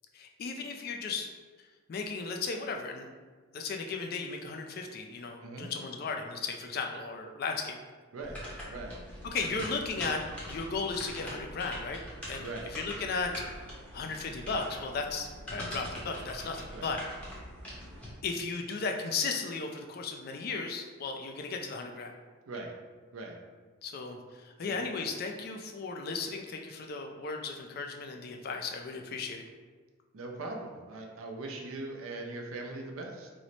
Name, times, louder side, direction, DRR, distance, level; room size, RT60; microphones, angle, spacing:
voice 1, 0.1-1.3 1.9-3.1 3.5-7.8 9.2-12.0 12.3-13.3 13.9-17.0 18.2-22.2 23.8-29.4, left 4 dB, 45° left, 3 dB, 0.3 m, -35 dB
voice 2, 5.4-5.7 8.1-8.4 8.7-9.0 12.4-12.7 16.7-16.9 22.5-22.7 23.1-23.4 24.6-24.8 30.1-33.3, right 2 dB, 80° right, 1 dB, 0.5 m, -40 dB
sound 1, 8.2-18.1, equal, 5° left, 0.7 m, -43 dB
3.1 x 2.0 x 3.9 m, 1.4 s
head